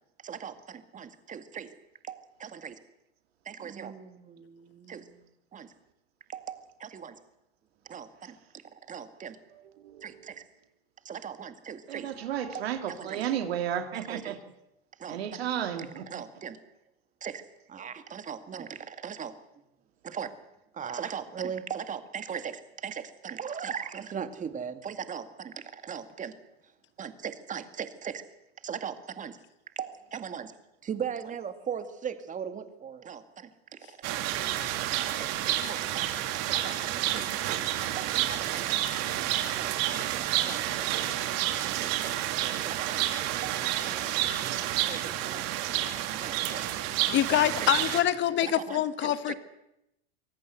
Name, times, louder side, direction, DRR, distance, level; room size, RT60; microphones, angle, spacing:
voice 1, 0.2-1.7 2.0-2.8 3.5-5.2 5.5-5.7 6.3-7.2 7.9-9.4 10.0-10.4 11.0-12.1 12.5-13.2 13.9-14.4 15.0-15.4 16.1-16.6 17.2-17.4 17.7-19.3 20.0-20.3 20.7-26.3 27.0-28.2 28.6-29.4 29.8-30.5 30.8-34.5 35.2-36.1 36.4-37.7 37.9-38.7 39.3-40.9 41.6-42.2 42.6-43.1 43.4-44.2 44.8-46.7 47.3-47.7 48.4-49.3, right 7 dB, 25° right, 10 dB, 2.1 m, -39 dB
voice 2, 9.5-10.4 11.9-14.4 15.1-16.2, right 9 dB, 85° right, 8 dB, 2.7 m, -33 dB
sound 1, 34.0-48.0, right 13 dB, 55° right, 2.6 m, -30 dB
voice 3, 47.1-49.3, left 12 dB, 40° left, 13 dB, 1.4 m, -25 dB
24.5 x 17.5 x 8.2 m, 0.85 s
hypercardioid pair, 110°, 30 cm